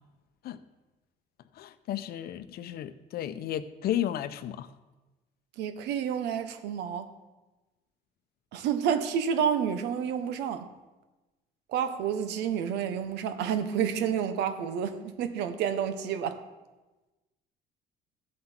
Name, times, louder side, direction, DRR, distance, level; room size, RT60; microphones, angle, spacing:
voice 1, 1.6-4.7, left 11 dB, 65° left, 12 dB, 0.7 m, -33 dB
voice 2, 5.6-7.1 8.5-10.7 11.7-16.4, right 8 dB, 85° right, 9 dB, 1.1 m, -29 dB
15.0 x 7.6 x 4.5 m, 1.1 s
cardioid pair, 110°, 17 cm